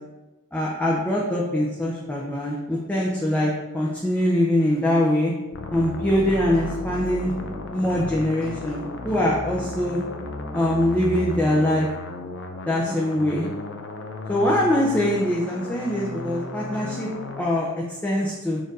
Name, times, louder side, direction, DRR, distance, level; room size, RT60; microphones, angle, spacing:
voice 1, 0.5-5.3 5.7-7.3 7.7-10.0 10.5-11.9 12.7-13.5 14.3-17.1 17.4-18.6, left 1 dB, 5° left, -5 dB, 0.5 m, -23 dB
sound 1, 5.5-17.4, left 2 dB, 55° left, 0.5 m, -34 dB
4.4 x 2.6 x 4.6 m, 1.1 s
head